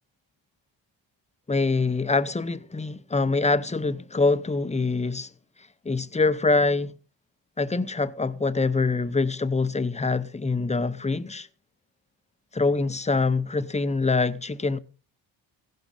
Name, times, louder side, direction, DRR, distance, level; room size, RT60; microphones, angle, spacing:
voice 1, 1.5-5.3 5.8-6.9 7.6-11.5 12.5-14.8, left 3 dB, 15° left, 0.8 m, -24 dB
16.0 x 12.0 x 4.0 m
cardioid pair, 100°, 48 cm